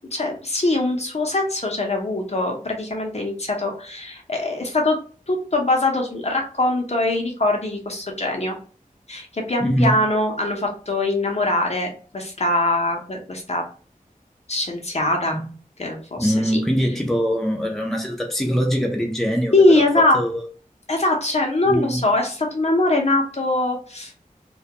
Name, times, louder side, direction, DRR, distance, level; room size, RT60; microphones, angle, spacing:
voice 1, 0.1-5.0 5.3-8.6 9.1-13.6 14.5-15.4 15.8-16.6 19.5-20.2 20.9-24.1, left 2 dB, 45° left, 0.6 m, -22 dB
voice 2, 9.6-10.0 15.3-15.5 16.2-20.4 21.6-22.0, equal, ahead, 0.5 m, -23 dB
2.2 x 2.2 x 2.8 m
wide cardioid pair, 65°, 15 cm